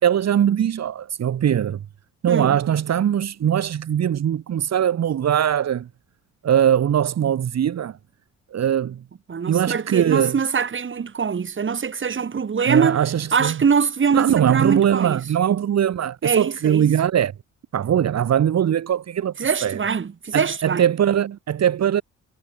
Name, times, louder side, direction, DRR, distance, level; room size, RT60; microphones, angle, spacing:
voice 1, 0.0-1.8 2.2-5.9 6.4-8.0 8.5-9.0 9.5-10.3 12.7-13.6 14.1-17.3 17.7-19.3 19.6-19.8 20.3-22.0, right 9 dB, 60° right, 3.1 m, -21 dB
voice 2, 2.3-2.6 9.3-13.0 13.3-15.2 16.2-16.9 19.4-20.9, right 6 dB, 40° right, 4.7 m, -23 dB
cardioid pair, 90°, 30 cm